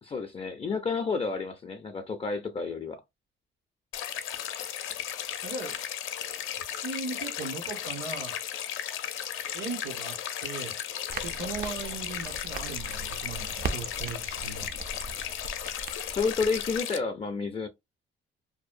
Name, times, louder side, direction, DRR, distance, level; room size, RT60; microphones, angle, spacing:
voice 1, 0.0-3.0 16.1-17.7, left 4 dB, 30° left, 0.4 m, -30 dB
sound 1, 3.9-17.0, left 10 dB, 80° left, 0.5 m, -35 dB
voice 2, 5.4-5.7 6.7-8.3 9.5-10.1 10.4-10.7 11.2-13.5 13.7-14.7, right 3 dB, 75° right, 1.5 m, -38 dB
Crackle, 11.1-16.8, right 4 dB, 45° right, 0.4 m, -39 dB
2.7 x 2.0 x 2.4 m
cardioid pair, 90°, 20 cm